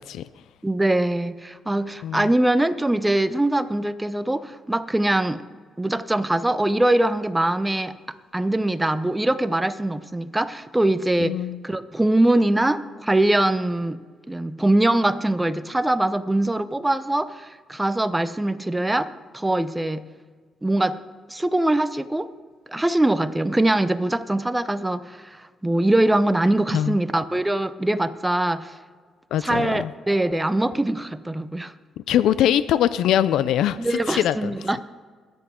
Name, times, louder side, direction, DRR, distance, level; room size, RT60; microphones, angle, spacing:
voice 1, 0.6-5.4 5.8-7.9 8.3-11.4 11.6-14.0 14.3-19.1 19.3-20.1 20.6-21.0 21.3-22.3 22.7-28.8 29.4-31.7 33.8-34.8, right 1 dB, 10° right, 12 dB, 0.5 m, -22 dB
voice 2, 11.2-11.6 26.7-27.0 29.3-29.9 32.1-34.7, left 11 dB, 85° left, 15 dB, 0.3 m, -22 dB
22.0 x 8.1 x 3.7 m, 1.6 s
cardioid pair, 110°, 0 cm